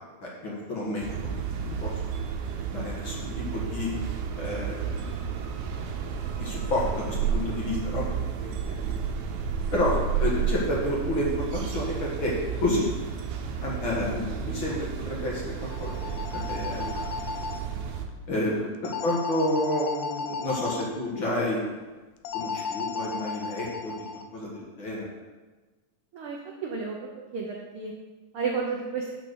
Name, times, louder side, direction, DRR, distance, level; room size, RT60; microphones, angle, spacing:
voice 1, 0.2-1.1 1.8-1.9 2.7-3.9 4.4-4.8 6.4-8.1 8.4-8.5 8.8-8.9 9.7-12.3 12.6-12.9 13.6-16.9 18.3-21.8 22.3-24.1 24.3-25.1, left 1 dB, 45° left, -4 dB, 2.1 m, -30 dB
sound 1, 1.0-18.1, right 7 dB, 90° right, 2.2 m, -32 dB
sound 2, 15.6-17.6 18.8-20.8 22.3-24.2, left 5 dB, 85° left, 2.2 m, -34 dB
voice 2, 26.1-27.0 27.3-27.9 28.3-29.1, right 5 dB, 70° right, -1 dB, 1.3 m, -32 dB
6.4 x 5.8 x 6.8 m, 1.2 s
omnidirectional pair, 3.5 m